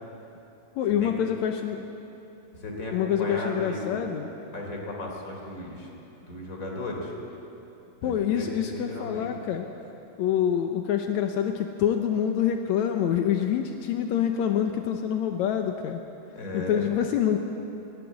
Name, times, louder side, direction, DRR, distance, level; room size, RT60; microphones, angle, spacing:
voice 1, 0.7-1.9 2.9-4.3 8.0-9.7 10.2-16.0 16.5-17.4, left 9 dB, 80° left, 5 dB, 1.7 m, -26 dB
voice 2, 2.5-4.1 4.5-5.9 6.2-7.2 8.0-9.3 16.4-16.8, left 2 dB, 20° left, 0 dB, 3.4 m, -35 dB
19.5 x 19.0 x 8.4 m, 2.9 s
omnidirectional pair, 4.3 m